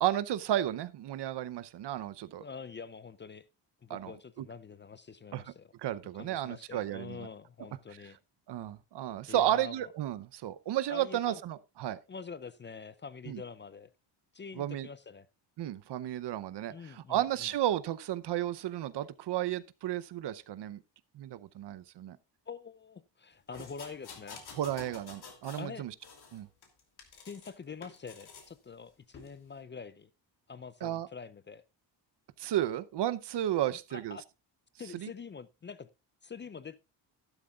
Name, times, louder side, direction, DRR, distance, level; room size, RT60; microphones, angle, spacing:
voice 1, 0.0-2.4 3.9-4.1 5.3-5.4 5.8-7.3 8.5-12.0 13.3-13.4 14.6-14.9 15.6-20.8 21.1-22.2 24.5-25.9 26.3-26.5 30.8-31.1 32.4-34.2 34.9-35.1, right 12 dB, 65° right, 0.8 m, -33 dB
voice 2, 2.4-3.5 3.8-5.7 6.1-8.2 9.3-9.9 10.9-11.4 12.1-13.9 14.3-15.3 16.7-17.5 22.5-24.4 25.6-25.9 27.2-30.1 30.5-31.6 33.7-34.2 34.8-35.9 36.2-36.8, left 5 dB, 25° left, 0.5 m, -45 dB
sound 1, 23.5-25.7 26.0-27.5 27.8-28.5 29.1-29.3, left 5 dB, 60° left, 2.8 m, -49 dB
12.5 x 11.5 x 2.4 m
cardioid pair, 110°, 45 cm